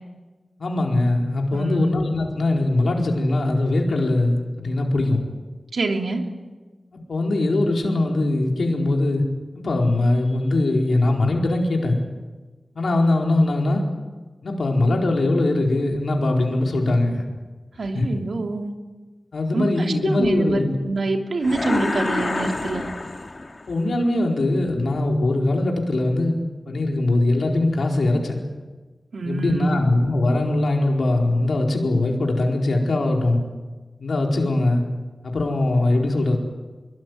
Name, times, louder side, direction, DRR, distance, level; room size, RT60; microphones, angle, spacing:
voice 1, 0.6-5.2 7.1-9.2 9.5-12.0 12.7-13.8 14.4-17.2 17.9-18.1 19.3-20.7 23.7-26.4 26.6-28.4 29.2-33.4 34.0-34.8 35.2-36.4, left 2 dB, 90° left, 1 dB, 4.6 m, -21 dB
voice 2, 1.5-1.9 5.7-6.2 17.8-18.8 19.5-22.9 29.1-29.8, right 3 dB, 85° right, 3 dB, 3.0 m, -26 dB
sound 1, 21.4-23.8, left 2 dB, 50° left, 2.2 m, -27 dB
24.5 x 22.5 x 9.5 m, 1.3 s
wide cardioid pair, 65°, 0 cm